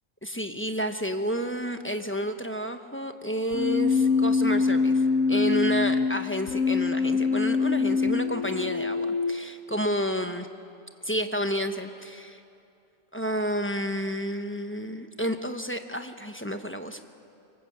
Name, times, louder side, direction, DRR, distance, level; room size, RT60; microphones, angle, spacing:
voice 1, 0.2-5.0 5.3-10.5 11.0-12.4 13.1-17.0, equal, 10° left, 6 dB, 1.0 m, -30 dB
Keyboard (musical), 3.5-9.5, left 4 dB, 85° left, 1.3 m, -24 dB
26.5 x 23.5 x 7.9 m, 2.6 s
omnidirectional pair, 1.4 m